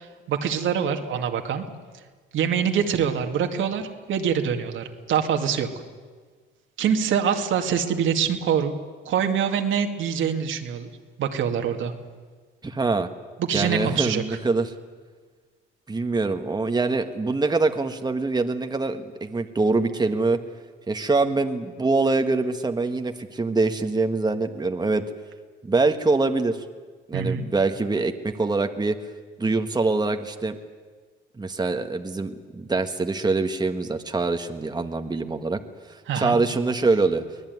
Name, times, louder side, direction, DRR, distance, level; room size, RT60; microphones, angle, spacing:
voice 1, 0.0-1.6 2.3-5.7 6.8-8.7 9.1-10.9 11.2-11.9 13.4-14.4 27.1-27.4 36.1-36.4, right 7 dB, 75° right, 5 dB, 2.3 m, -24 dB
voice 2, 12.6-13.1 13.5-14.7 15.9-20.4 20.9-25.0 25.6-26.6 27.1-29.0 29.4-30.5 31.4-35.6 35.9-37.2, right 3 dB, 20° right, 6 dB, 1.5 m, -24 dB
24.0 x 18.5 x 9.5 m, 1.5 s
cardioid pair, 90°, 20 cm